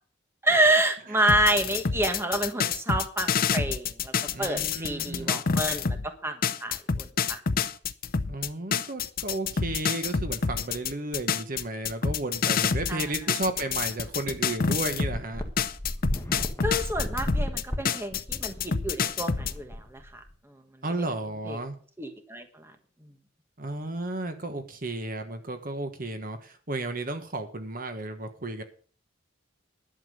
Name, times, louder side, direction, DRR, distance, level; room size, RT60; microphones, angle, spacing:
voice 1, 0.4-4.1 4.4-6.0 6.2-7.4 12.9-13.0 16.6-20.2 21.5-21.6 22.0-22.7, right 1 dB, 15° right, 6 dB, 1.4 m, -28 dB
sound 1, 1.3-6.1 6.4-15.2 15.6-19.5, left 6 dB, 50° left, 0.6 m, -28 dB
voice 2, 4.3-5.4 8.3-15.4 20.8-21.8 23.6-28.6, right 2 dB, 45° right, 7 dB, 1.3 m, -33 dB
sound 2, 14.1-14.2 14.5-14.6 15.1-20.3, left 1 dB, 15° left, 1.5 m, -34 dB
11.5 x 7.2 x 6.8 m, 0.43 s
head